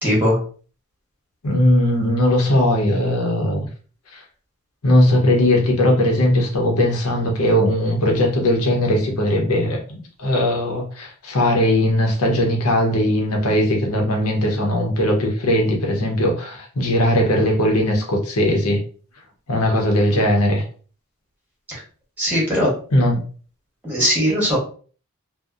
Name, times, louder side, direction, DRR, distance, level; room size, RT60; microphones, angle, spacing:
voice 1, 0.0-0.4 21.7-21.8 22.2-22.7 23.8-24.6, equal, 10° right, -5 dB, 1.0 m, -19 dB
voice 2, 1.4-3.6 4.1-4.2 4.8-18.8 19.5-20.6 22.9-23.2, left 1 dB, 80° left, 1 dB, 0.8 m, -19 dB
2.7 x 2.0 x 2.4 m, 0.41 s
head